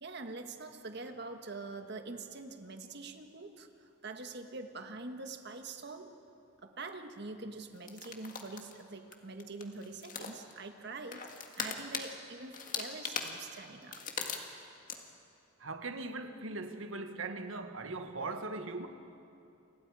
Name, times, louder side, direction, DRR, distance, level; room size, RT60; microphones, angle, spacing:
voice 1, 0.0-6.2 6.6-11.3 11.6-14.0, right 3 dB, 55° right, 1.5 m, -45 dB
sound 1, 7.9-8.8 9.1-9.2 9.4-10.6 11.1-12.1 12.5-14.6 14.9-15.0, left 6 dB, 40° left, 1.9 m, -39 dB
voice 2, 15.6-18.9, right 3 dB, 85° right, 1.4 m, -40 dB
29.5 x 25.5 x 4.9 m
head